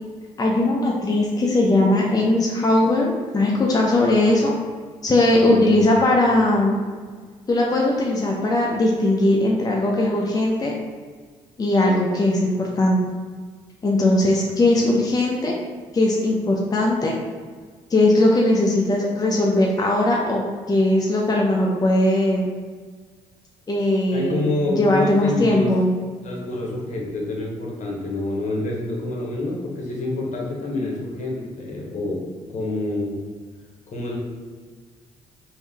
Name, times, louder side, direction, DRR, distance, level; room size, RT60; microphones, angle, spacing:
voice 1, 0.4-4.5 5.0-6.8 7.5-10.7 11.6-13.0 13.8-15.6 15.9-17.1 17.9-22.5 23.7-25.9, left 1 dB, 25° left, -2 dB, 0.6 m, -19 dB
voice 2, 5.4-6.2 24.1-25.7 26.2-32.2 32.5-33.2 33.9-34.2, left 2 dB, 55° left, -2 dB, 1.0 m, -27 dB
3.5 x 2.7 x 3.4 m, 1.5 s
supercardioid pair, 55°, 15 cm